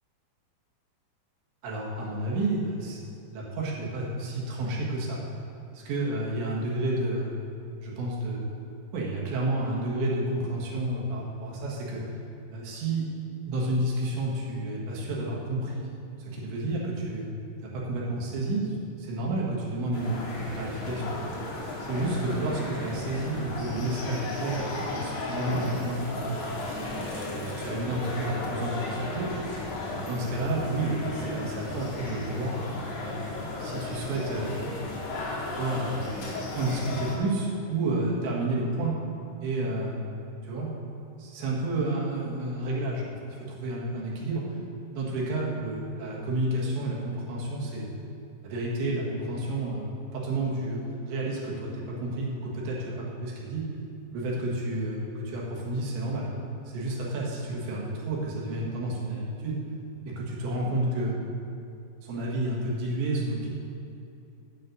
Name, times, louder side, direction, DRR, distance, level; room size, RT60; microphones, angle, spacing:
voice 1, 1.6-3.0 3.3-5.2 5.9-7.4 7.8-8.5 8.9-12.0 12.5-13.1 13.5-15.9 16.2-17.3 17.6-20.2 20.5-21.2 21.8-26.4 26.8-29.3 29.8-32.6 33.0-34.5 35.5-36.0 36.5-38.9 39.4-40.1 40.4-40.7 41.2-44.6 44.9-47.9 48.4-49.9 50.1-53.6 54.1-56.3 56.7-59.6 60.1-61.2 62.0-63.5, right 2 dB, 80° right, -4 dB, 4.0 m, -30 dB
sound 1, 19.9-37.2, left 2 dB, 55° left, 2.5 m, -35 dB
8.6 x 7.5 x 6.7 m, 2.7 s
omnidirectional pair, 5.2 m